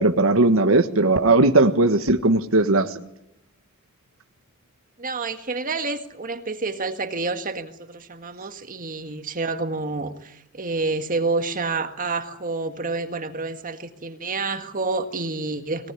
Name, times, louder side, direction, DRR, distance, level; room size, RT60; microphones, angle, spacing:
voice 1, 0.0-3.0, right 2 dB, 70° right, 8 dB, 1.4 m, -18 dB
voice 2, 5.0-15.9, right 3 dB, 40° right, 8 dB, 1.8 m, -28 dB
22.0 x 19.0 x 9.8 m, 0.79 s
head